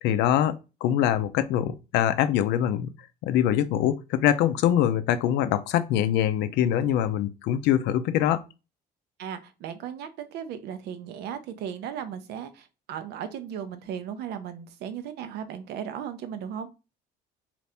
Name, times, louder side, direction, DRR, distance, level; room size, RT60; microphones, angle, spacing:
voice 1, 0.0-2.9 3.2-8.4, left 11 dB, 85° left, 0.4 m, -24 dB
voice 2, 9.2-16.7, right 8 dB, 80° right, 0.5 m, -36 dB
2.7 x 2.5 x 3.3 m
cardioid pair, 110°, 17 cm